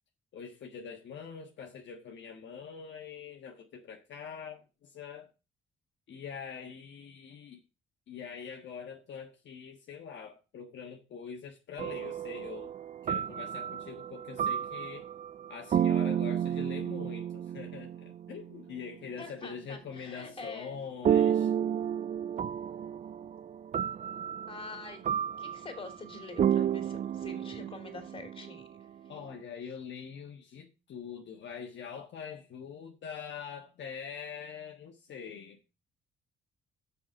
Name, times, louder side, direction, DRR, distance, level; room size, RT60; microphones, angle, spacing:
voice 1, 0.3-5.3 6.1-7.6 8.1-12.7 13.0-15.1 15.5-21.5 29.1-35.6, left 6 dB, 65° left, 1.4 m, -44 dB
sound 1, 11.8-18.9 21.1-28.7, right 9 dB, 40° right, 0.4 m, -32 dB
voice 2, 19.2-20.8 24.5-25.0 25.4-28.8, left 3 dB, 25° left, 3.0 m, -45 dB
6.4 x 6.0 x 7.4 m
cardioid pair, 90°, 20 cm